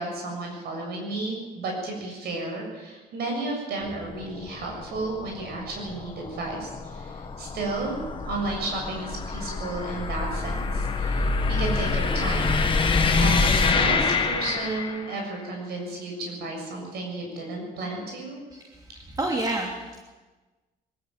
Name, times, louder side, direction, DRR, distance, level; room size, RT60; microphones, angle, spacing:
voice 1, 0.0-8.0 8.2-12.5 13.0-18.4, right 2 dB, 70° right, 0 dB, 7.1 m, -33 dB
sound 1, 3.8-15.2, left 4 dB, 30° left, 1.9 m, -26 dB
voice 2, 19.0-20.0, right 2 dB, 20° right, 0 dB, 3.0 m, -28 dB
21.5 x 13.5 x 9.0 m, 1.2 s
cardioid pair, 110°, 17 cm